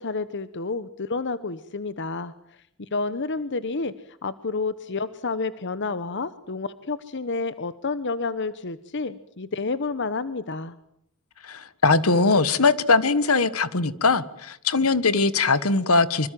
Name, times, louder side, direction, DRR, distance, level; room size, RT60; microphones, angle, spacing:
voice 1, 0.0-2.3 2.9-10.7, left 3 dB, 55° left, 14 dB, 1.1 m, -30 dB
voice 2, 11.4-16.3, left 3 dB, 75° left, 15 dB, 1.5 m, -21 dB
25.5 x 25.0 x 7.7 m, 0.73 s
head